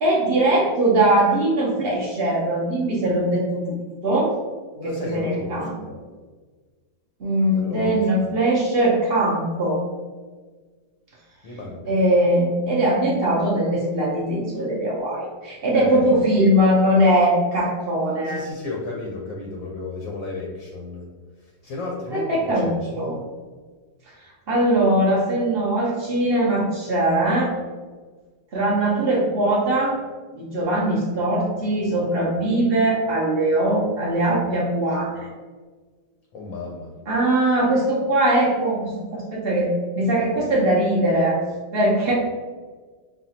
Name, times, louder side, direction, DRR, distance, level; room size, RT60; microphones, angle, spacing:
voice 1, 0.0-3.8 4.0-4.4 4.8-5.7 7.2-9.8 11.9-18.4 22.1-23.1 24.5-27.5 28.5-30.0 30.3-35.3 37.1-41.4 41.7-42.1, right 1 dB, 65° right, -4 dB, 0.5 m, -21 dB
voice 2, 4.8-5.7 7.5-8.3 11.4-11.8 15.7-16.2 18.2-21.0 21.4-23.2 36.3-36.9, left 3 dB, 65° left, -2 dB, 0.8 m, -34 dB
5.5 x 2.3 x 2.7 m, 1.4 s
omnidirectional pair, 2.0 m